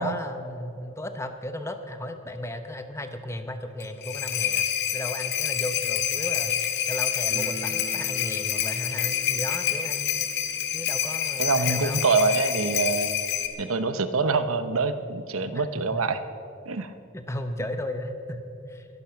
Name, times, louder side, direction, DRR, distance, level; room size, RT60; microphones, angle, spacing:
voice 1, 0.0-4.7 4.9-10.3 10.7-12.0 15.5-16.0 17.1-18.9, left 1 dB, 15° left, 7 dB, 0.9 m, -35 dB
sound 1, 3.8-13.5, left 10 dB, 50° left, 1.3 m, -27 dB
sound 2, 7.3-14.0 14.3-14.4 14.6-14.7 15.5-15.6 15.9-17.0, right 1 dB, 45° right, 1.8 m, -47 dB
voice 2, 11.4-13.1 13.6-16.2 16.7-16.9, right 4 dB, 90° right, 11 dB, 0.9 m, -25 dB
22.0 x 11.0 x 5.9 m, 2.7 s
head